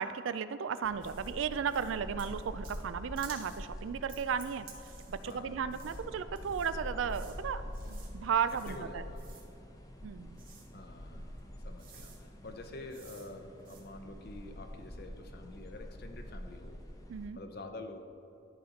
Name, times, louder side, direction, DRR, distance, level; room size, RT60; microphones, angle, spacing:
voice 1, 0.0-4.7 5.1-9.0 10.0-10.4 17.1-17.4, right 7 dB, 70° right, 13 dB, 0.4 m, -35 dB
sound 1, 0.8-17.3, equal, 15° left, 0.7 m, -46 dB
sound 2, 1.0-1.3 1.7-1.9 2.2-2.8 3.2-3.6 4.1-5.4 5.7-6.0 6.4-6.7 7.1-7.4 7.7-8.1 8.4-8.8 9.2-9.5 10.3-10.7 11.4-11.5 11.8-12.2 12.9-13.3 13.6-13.8, right 5 dB, 45° right, 1.4 m, -54 dB
voice 2, 5.3-5.6 8.7-9.3 10.7-16.8 17.3-18.0, left 2 dB, 50° left, 6 dB, 0.7 m, -47 dB
12.0 x 4.2 x 5.2 m, 2.7 s
head